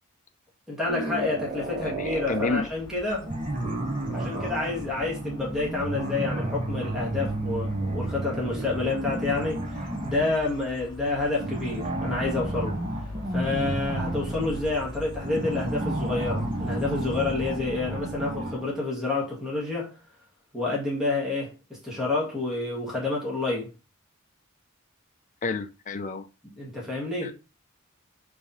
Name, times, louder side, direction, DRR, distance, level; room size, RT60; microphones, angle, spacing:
voice 1, 0.7-3.3 4.1-12.8 13.3-19.9 20.5-23.7 26.6-27.3, left 3 dB, ahead, 1.9 m, -29 dB
sound 1, 0.9-2.6 3.2-10.4 11.3-18.8, right 1 dB, 30° right, 1.3 m, -32 dB
sound 2, 1.3-18.7, left 1 dB, 20° left, 1.6 m, -43 dB
voice 2, 1.8-2.7 25.4-26.3 27.2-27.3, left 3 dB, 35° left, 0.6 m, -30 dB
5.2 x 3.5 x 5.6 m
head